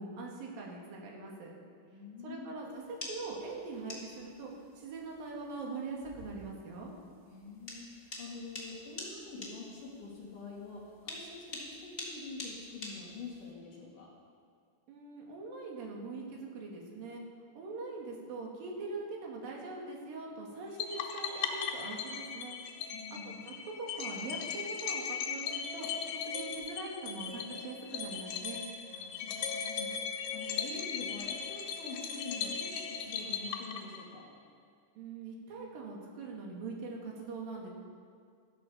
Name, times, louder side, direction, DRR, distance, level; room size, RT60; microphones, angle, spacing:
voice 1, 0.0-1.5 2.2-4.5 4.8-6.9 14.9-17.2 17.6-22.6 23.3-28.6 35.0-37.7, right 3 dB, 55° right, -2 dB, 3.5 m, -42 dB
voice 2, 1.9-2.5 7.3-14.1 22.9-23.4 28.9-34.3, left 4 dB, 55° left, -3 dB, 3.1 m, -46 dB
sound 1, 2.7-13.5, left 1 dB, 25° left, 1.4 m, -46 dB
sound 2, 20.8-34.2, left 7 dB, 90° left, 3.7 m, -38 dB
14.0 x 14.0 x 5.6 m, 2.3 s
omnidirectional pair, 5.3 m